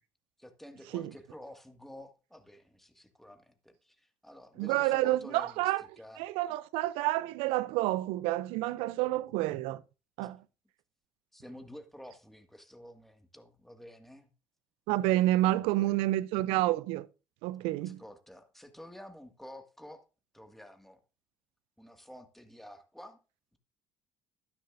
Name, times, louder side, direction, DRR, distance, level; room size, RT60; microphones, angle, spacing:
voice 1, 0.4-6.2 10.2-10.3 11.3-14.3 15.4-16.0 17.8-20.0 20.3-21.0 21.8-23.2, left 1 dB, 5° left, 1.9 m, -50 dB
voice 2, 4.6-5.8 6.2-9.8 10.2-10.4 14.9-17.1 17.4-18.0, right 16 dB, 75° right, 0.5 m, -29 dB
12.0 x 10.5 x 2.6 m
hypercardioid pair, 65°, 10 cm